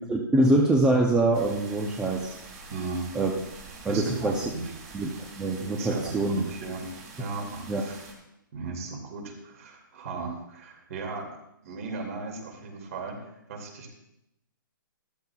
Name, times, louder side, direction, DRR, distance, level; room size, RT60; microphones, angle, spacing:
voice 1, 0.1-2.3 3.1-3.3 3.8-4.4 4.9-5.1 5.4-6.4 7.7-7.8, right 2 dB, 5° right, -1 dB, 0.6 m, -24 dB
sound 1, 1.3-8.1, right 4 dB, 25° right, 2.2 m, -46 dB
voice 2, 2.7-3.1 3.9-4.7 5.8-6.8 7.2-8.0 8.5-11.3 11.6-13.9, right 3 dB, 40° right, 2 dB, 2.5 m, -36 dB
13.5 x 12.5 x 2.4 m, 0.83 s
hypercardioid pair, 155°, 12 cm